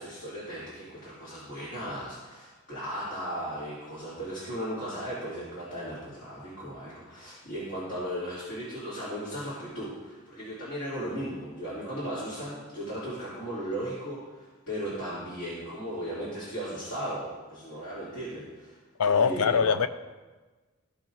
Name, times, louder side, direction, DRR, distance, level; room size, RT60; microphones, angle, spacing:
voice 1, 0.0-18.7 19.0-19.7, equal, 60° left, 2.7 m, -36 dB
voice 2, 19.0-19.9, left 6 dB, 90° left, 0.4 m, -23 dB
14.5 x 5.9 x 2.6 m
head